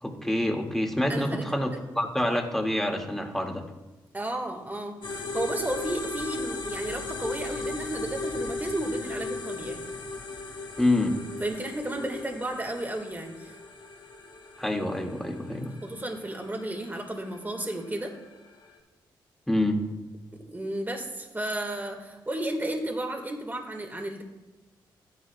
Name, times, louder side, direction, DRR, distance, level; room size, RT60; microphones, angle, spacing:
voice 1, 0.0-3.6 10.8-11.1 14.6-15.7 19.5-19.8, left 1 dB, 5° left, 1 dB, 2.2 m, -27 dB
voice 2, 1.1-1.5 1.7-1.8 4.1-9.8 11.4-13.6 15.8-18.1 20.5-24.2, right 1 dB, 20° right, 2 dB, 1.9 m, -33 dB
sound 1, 5.0-18.8, left 3 dB, 65° left, 2.0 m, -37 dB
13.5 x 9.8 x 2.4 m, 1.1 s
supercardioid pair, 50°, 9 cm